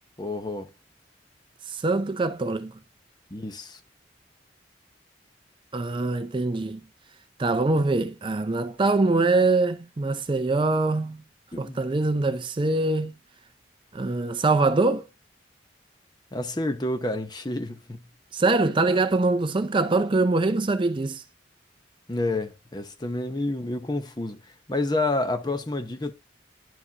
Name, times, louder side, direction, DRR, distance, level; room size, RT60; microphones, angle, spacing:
voice 1, 0.2-0.7 3.3-3.8 11.5-11.8 16.3-18.0 22.1-24.4 24.7-26.1, left 2 dB, 20° left, 0.8 m, -29 dB
voice 2, 1.7-2.7 5.7-6.8 7.4-11.2 11.6-13.1 13.9-15.1 18.3-21.2, right 3 dB, 25° right, 0.4 m, -23 dB
11.0 x 4.8 x 2.8 m
head